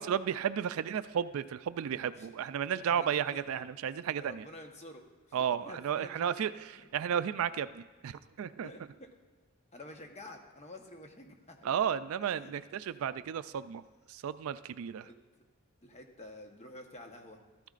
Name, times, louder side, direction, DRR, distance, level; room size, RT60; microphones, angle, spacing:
voice 1, 0.0-4.5 5.3-8.7 11.6-13.8 14.1-15.1, right 8 dB, 70° right, 14 dB, 0.3 m, -33 dB
voice 2, 1.9-2.3 2.9-3.7 4.2-6.4 6.7-6.9 8.6-9.1 9.7-11.7 12.2-12.5 15.0-15.2 15.8-17.4, left 1 dB, 30° left, 3 dB, 1.0 m, -50 dB
13.5 x 13.0 x 2.5 m, 1.3 s
head